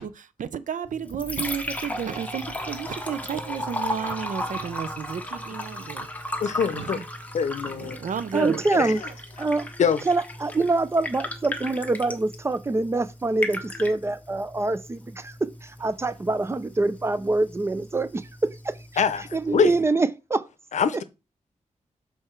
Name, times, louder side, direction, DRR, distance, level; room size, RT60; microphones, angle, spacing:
voice 1, 0.0-6.1 6.7-7.0 7.6-8.7 9.0-9.1, right 7 dB, 80° right, 0.6 m, -32 dB
Liquid, 0.9-19.9, left 1 dB, 10° left, 1.0 m, -36 dB
voice 2, 6.4-7.0 7.3-8.0 8.7-9.0 9.8-10.0 19.0-19.2 19.5-19.7 20.7-21.0, left 7 dB, 65° left, 0.7 m, -23 dB
voice 3, 8.3-9.0 9.4-9.7 10.1-19.0 19.3-20.5, right 2 dB, 20° right, 0.5 m, -25 dB
6.7 x 4.5 x 4.5 m
wide cardioid pair, 170°, 13 cm